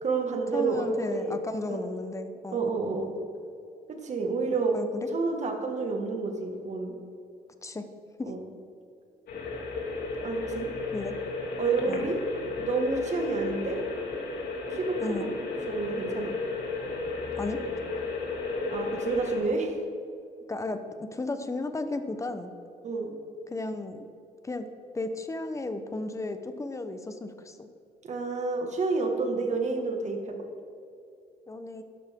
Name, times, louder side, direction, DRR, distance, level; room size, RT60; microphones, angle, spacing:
voice 1, 0.0-1.4 1.7-1.8 2.5-3.1 3.9-4.8 5.1-7.0 8.3-8.4 10.2-10.7 11.6-12.2 12.6-13.8 14.7-15.3 15.7-16.3 18.7-19.8 22.8-23.1 28.0-30.3, right 4 dB, 45° right, 3 dB, 1.9 m, -29 dB
voice 2, 0.5-2.7 4.7-5.1 7.6-7.9 8.2-8.3 10.9-11.2 11.9-12.1 15.0-15.3 17.4-17.6 20.5-22.5 23.5-24.0 24.4-24.7 24.9-27.7 31.5-31.8, left 2 dB, 20° left, 9 dB, 0.9 m, -34 dB
sound 1, 9.3-19.4, left 3 dB, 75° left, 2.8 m, -34 dB
13.0 x 11.0 x 3.8 m, 2.6 s
cardioid pair, 125°, 16 cm